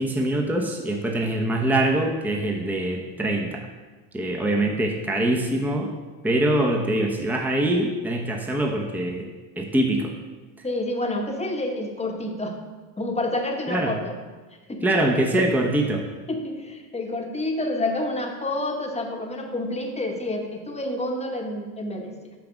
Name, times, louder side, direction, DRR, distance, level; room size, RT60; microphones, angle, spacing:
voice 1, 0.0-3.7 4.1-5.9 6.2-9.3 9.6-10.1 13.7-13.9 14.8-16.0, right 1 dB, 5° right, 1 dB, 0.9 m, -23 dB
voice 2, 10.6-12.6 13.0-14.1 14.7-14.9 15.3-15.5 16.3-22.3, left 1 dB, 15° left, 2 dB, 1.2 m, -29 dB
6.1 x 5.7 x 5.1 m, 1.3 s
supercardioid pair, 80°, 48 cm